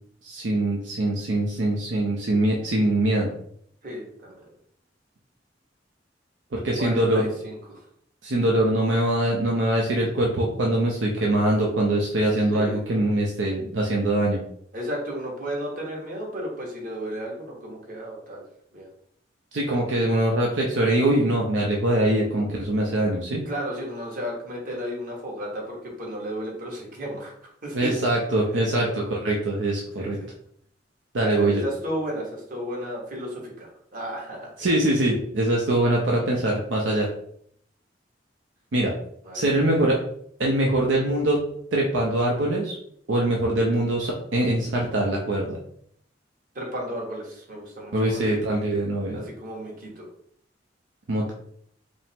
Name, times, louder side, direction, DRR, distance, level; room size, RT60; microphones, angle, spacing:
voice 1, 0.2-3.3 6.5-7.3 8.2-14.4 19.5-23.4 27.7-30.2 31.1-31.6 34.6-37.1 38.7-38.9 39.3-40.0 40.4-41.4 41.7-42.8 43.1-45.6 47.9-49.2 51.1-51.3, right 1 dB, 80° right, -1 dB, 0.6 m, -23 dB
voice 2, 3.8-4.5 6.8-7.9 12.5-12.8 14.7-18.4 18.7-18.9 23.4-27.3 27.6-27.9 28.5-28.9 30.0-30.3 31.2-34.5 39.2-39.4 46.5-48.2 49.1-50.0, equal, 50° right, -2 dB, 1.3 m, -33 dB
5.1 x 2.0 x 3.5 m, 0.67 s
head